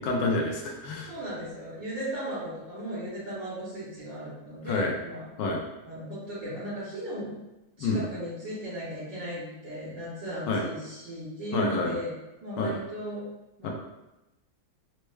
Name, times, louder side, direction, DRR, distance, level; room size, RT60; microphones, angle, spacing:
voice 1, 0.0-1.1 4.7-4.9 5.4-5.6 7.8-8.0 10.5-10.6 11.5-11.9 12.6-12.7 13.6-13.7, left 3 dB, 70° left, 0 dB, 1.2 m, -27 dB
voice 2, 1.1-5.3 5.8-7.3 7.8-12.1 12.4-13.2 13.6-13.7, equal, 65° right, -13 dB, 2.0 m, -36 dB
4.3 x 2.1 x 3.2 m, 0.97 s
omnidirectional pair, 2.2 m